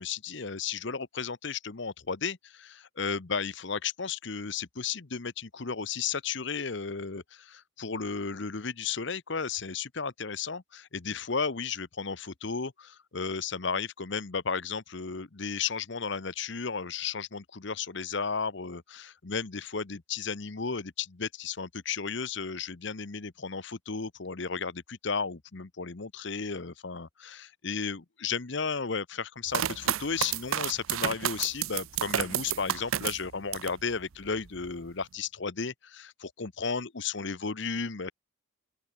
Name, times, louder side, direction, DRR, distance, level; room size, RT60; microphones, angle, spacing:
voice 1, 0.0-38.1, left 5 dB, 55° left, 0.9 m, -34 dB
sound 1, 29.5-33.8 34.3-34.9, right 10 dB, 80° right, 0.6 m, -31 dB
open air
head